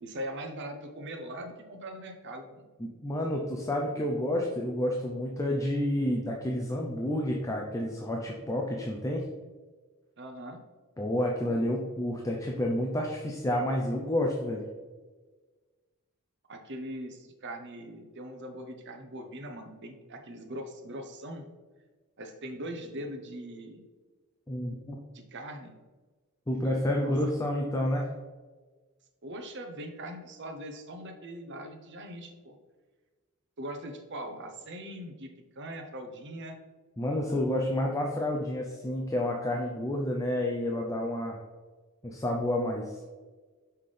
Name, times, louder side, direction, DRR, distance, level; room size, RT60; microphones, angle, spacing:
voice 1, 0.0-2.7 10.2-10.6 16.5-21.5 22.2-23.8 25.1-25.7 27.0-27.1 29.2-32.5 33.6-35.3 35.5-36.6, right 1 dB, 50° right, 5 dB, 0.8 m, -41 dB
voice 2, 2.8-9.2 11.0-14.6 24.5-25.0 26.5-28.1 37.0-41.4 42.0-43.0, left 1 dB, 15° left, -1 dB, 0.5 m, -30 dB
5.8 x 5.6 x 3.3 m, 1.3 s
head